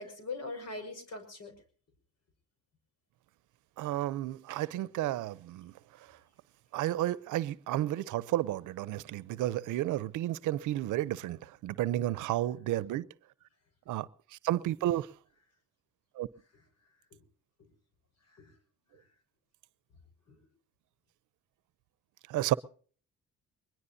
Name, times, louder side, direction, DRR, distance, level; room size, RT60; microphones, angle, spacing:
voice 1, 0.0-1.5 16.5-16.6 18.3-18.5 18.9-19.0 20.3-20.4, left 3 dB, 60° left, 5.8 m, -42 dB
voice 2, 3.8-5.7 6.7-11.4 11.6-13.1 13.9-14.1 14.4-15.1 16.2-16.3 22.3-22.5, right 14 dB, 85° right, 0.7 m, -32 dB
22.0 x 21.0 x 2.7 m
cardioid pair, 90°, 30 cm